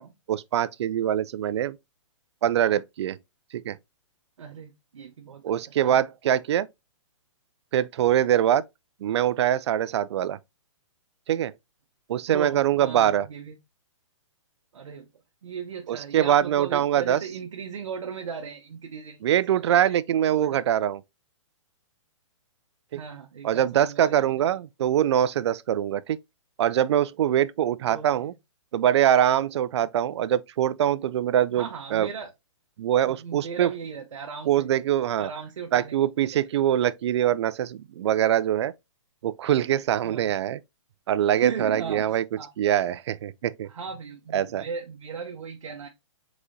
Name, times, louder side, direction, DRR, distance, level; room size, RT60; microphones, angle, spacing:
voice 1, 0.3-1.8 2.4-3.2 3.6-3.8 5.4-6.7 7.7-8.6 9.0-10.4 11.3-11.5 12.1-13.3 15.9-17.2 19.2-21.0 23.4-26.2 26.6-28.3 28.7-32.1 32.8-33.7 34.5-35.3 35.7-38.7 39.2-40.6 41.1-42.2 42.6-43.7 44.3-44.7, right 11 dB, 60° right, 0.4 m, -23 dB
voice 2, 4.4-5.4 5.8-6.0 12.3-13.6 14.7-15.1 15.4-19.3 19.5-20.0 20.4-20.6 22.9-24.6 27.8-28.3 31.5-32.3 33.0-34.7 35.2-36.0 40.0-40.3 41.3-42.5 43.7-45.9, right 6 dB, 85° right, 0.8 m, -37 dB
4.7 x 4.0 x 2.6 m
hypercardioid pair, 150°, 16 cm